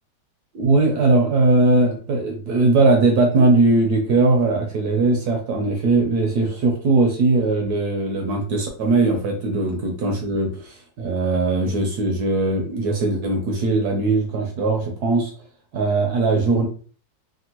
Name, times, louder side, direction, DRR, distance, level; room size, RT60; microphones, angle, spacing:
voice 1, 0.5-15.3 15.7-16.7, right 3 dB, 70° right, 2 dB, 1.0 m, -19 dB
3.4 x 2.2 x 2.8 m, 0.42 s
omnidirectional pair, 2.1 m